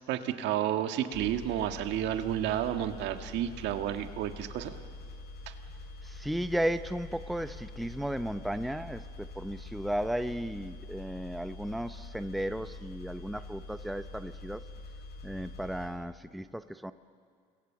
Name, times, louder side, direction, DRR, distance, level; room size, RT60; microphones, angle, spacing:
voice 1, 0.1-4.7 5.5-5.6, right 11 dB, 65° right, 7 dB, 1.7 m, -31 dB
sound 1, 1.1-15.9, left 2 dB, 55° left, 6.8 m, -45 dB
voice 2, 6.0-14.7 15.2-16.9, equal, ahead, 11 dB, 0.8 m, -35 dB
29.5 x 22.5 x 7.3 m, 2.3 s
supercardioid pair, 80°, 19 cm